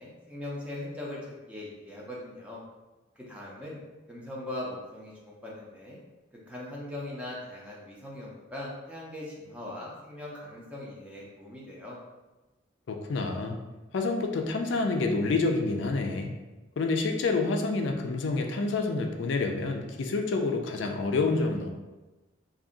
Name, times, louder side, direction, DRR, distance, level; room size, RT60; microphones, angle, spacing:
voice 1, 0.0-2.6 3.3-3.8 4.1-6.0 6.5-12.0, left 1 dB, 5° right, -5 dB, 0.6 m, -40 dB
voice 2, 12.9-13.6 13.9-16.3 16.8-21.7, left 3 dB, 70° left, 4 dB, 0.4 m, -28 dB
2.7 x 2.6 x 3.8 m, 1.1 s
head